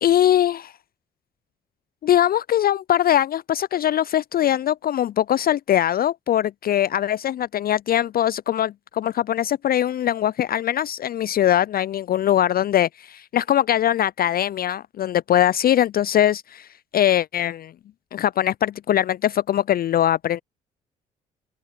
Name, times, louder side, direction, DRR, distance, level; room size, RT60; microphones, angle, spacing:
voice 1, 0.0-0.7 2.0-16.7 16.9-17.7 18.1-20.4, left 11 dB, 45° left, 0.5 m, -21 dB
open air
hypercardioid pair, 50°, 21 cm